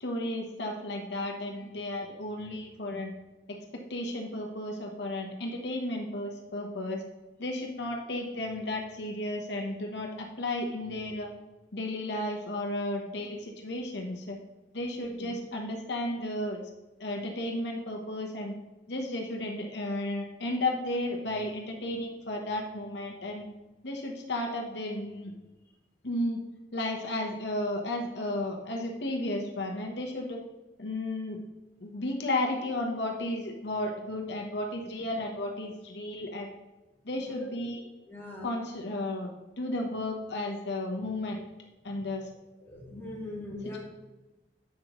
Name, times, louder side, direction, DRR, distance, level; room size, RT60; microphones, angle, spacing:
voice 1, 0.0-3.1 3.5-7.0 7.4-11.3 11.7-14.4 14.7-16.6 17.0-18.5 18.9-23.4 23.8-25.3 26.0-26.4 26.7-30.4 30.8-31.4 31.8-36.6 37.0-37.8 38.4-39.3 39.6-41.4 41.8-42.3, left 1 dB, 70° left, 1 dB, 1.0 m, -33 dB
voice 2, 15.0-15.3 37.2-37.5 38.1-38.6 42.6-43.8, left 2 dB, 10° left, -4 dB, 2.4 m, -41 dB
10.5 x 7.7 x 3.0 m, 1.1 s
head